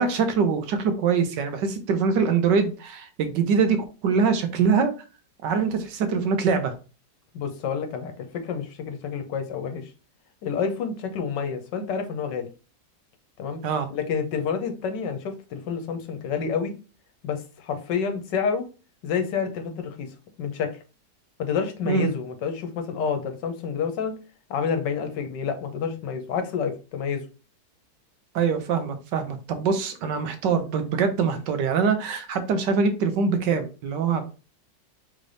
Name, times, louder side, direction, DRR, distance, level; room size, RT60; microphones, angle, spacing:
voice 1, 0.0-4.9 5.4-6.7 13.6-13.9 21.9-22.1 28.3-34.3, right 5 dB, 80° right, 8 dB, 1.4 m, -23 dB
voice 2, 7.3-9.9 10.4-12.5 13.4-13.6 13.9-16.8 17.2-18.7 19.0-20.1 20.4-20.8 21.4-24.2 24.5-27.2, left 6 dB, 80° left, 6 dB, 1.5 m, -29 dB
4.1 x 3.3 x 3.9 m, 0.33 s
omnidirectional pair, 1.9 m